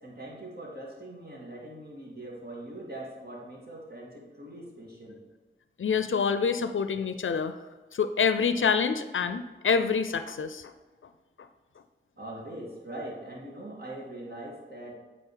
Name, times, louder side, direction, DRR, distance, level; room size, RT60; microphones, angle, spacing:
voice 1, 0.0-5.2 12.2-15.0, right 1 dB, 55° right, -3 dB, 1.9 m, -42 dB
voice 2, 5.8-7.5 7.9-10.7, left 6 dB, 80° left, 10 dB, 0.4 m, -26 dB
8.8 x 4.2 x 4.7 m, 1.3 s
wide cardioid pair, 70°, 20 cm